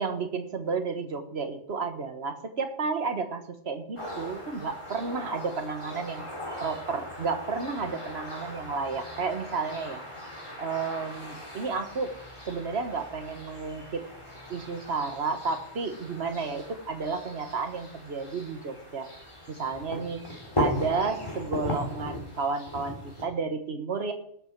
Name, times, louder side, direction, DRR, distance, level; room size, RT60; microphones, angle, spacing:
voice 1, 0.0-6.3 6.6-10.0 10.6-12.2 12.5-14.0 14.5-19.1 19.5-20.2 20.6-24.1, right 4 dB, 60° right, 7 dB, 1.6 m, -32 dB
sound 1, 4.0-23.2, left 1 dB, 25° left, 3.6 m, -38 dB
19.5 x 8.1 x 4.7 m, 0.69 s
omnidirectional pair, 1.2 m